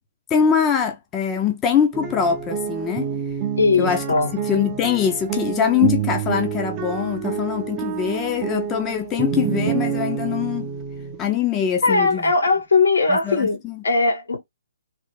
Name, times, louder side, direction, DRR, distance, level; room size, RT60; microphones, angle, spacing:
voice 1, 0.3-3.1 3.8-4.0 4.4-10.7 11.2-12.3 13.1-13.8, left 8 dB, 15° left, 0.6 m, -23 dB
sound 1, 1.9-11.3, right 8 dB, 20° right, 0.6 m, -27 dB
voice 2, 3.6-4.3 11.8-14.4, left 3 dB, 85° left, 1.8 m, -19 dB
3.3 x 2.0 x 3.1 m
hypercardioid pair, 150°, 0 cm